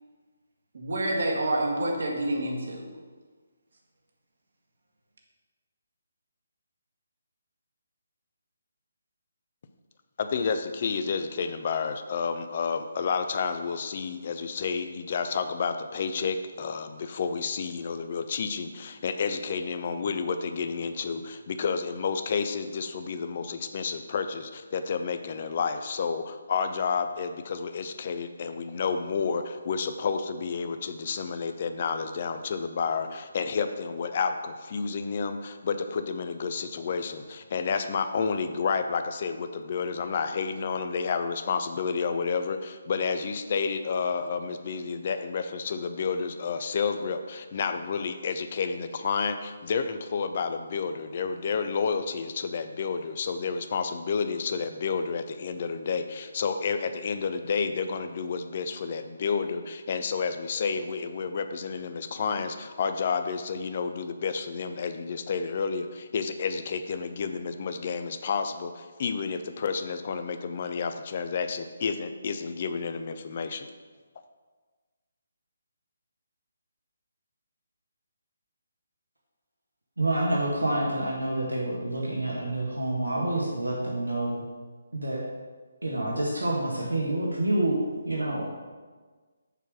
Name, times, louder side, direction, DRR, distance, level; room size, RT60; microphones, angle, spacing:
voice 1, 0.7-2.9, right 1 dB, 60° right, 0 dB, 1.5 m, -28 dB
voice 2, 10.2-73.7, left 5 dB, 40° left, 8 dB, 0.5 m, -30 dB
voice 3, 80.0-84.4 84.9-85.2 85.8-87.8 88.0-88.5, right 1 dB, 80° right, -3 dB, 1.5 m, -28 dB
6.8 x 4.7 x 6.2 m, 1.4 s
figure-of-eight pair, 145°, 0 cm